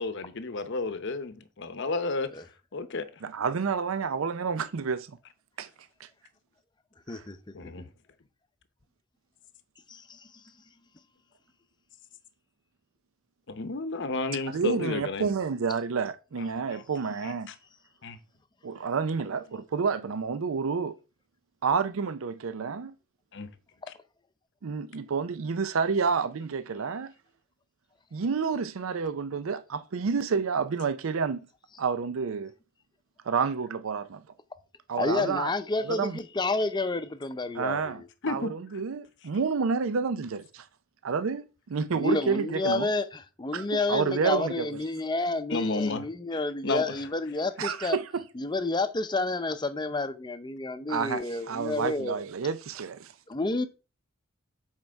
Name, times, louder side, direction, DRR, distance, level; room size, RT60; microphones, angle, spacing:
voice 1, 0.0-2.3 2.7-3.0 7.5-7.9 13.5-15.3 16.7-16.8 17.2-17.5 18.0-18.2 23.3-23.5 38.2-38.5 45.5-46.0 46.6-46.8, left 3 dB, 55° left, 0.8 m, -31 dB
voice 2, 3.2-5.2 5.6-5.7 6.0-6.1 7.1-7.2 14.5-17.5 18.6-20.9 21.6-22.9 24.6-27.1 28.1-31.4 31.8-32.5 33.3-34.2 34.9-35.5 35.8-36.2 37.5-40.7 41.0-42.9 43.5-44.6 47.6-48.2 50.9-53.1, right 5 dB, 70° right, 0.5 m, -29 dB
voice 3, 7.1-7.5 9.9-10.3 23.8-23.9 34.9-38.1 41.9-48.0 48.3-52.2 53.3-53.7, left 3 dB, 20° left, 0.6 m, -30 dB
7.5 x 4.5 x 4.5 m
head